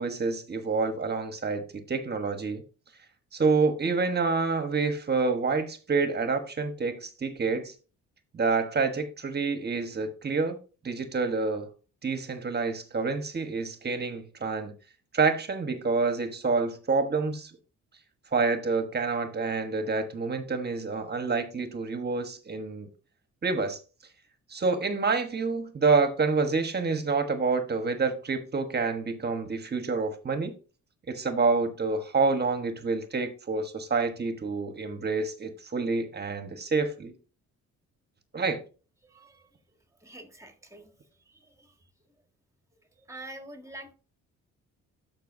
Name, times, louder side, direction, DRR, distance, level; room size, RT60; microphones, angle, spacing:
voice 1, 0.0-2.6 3.3-7.7 8.3-10.5 10.8-11.7 12.0-14.7 15.1-17.5 18.3-22.9 23.4-23.8 24.5-30.5 31.1-37.1 38.3-38.6, right 4 dB, 35° right, 1.3 m, -28 dB
voice 2, 39.0-39.5 40.0-40.9 41.3-41.7 43.0-43.9, right 1 dB, 10° right, 1.7 m, -46 dB
11.5 x 5.8 x 2.7 m
cardioid pair, 90°, 30 cm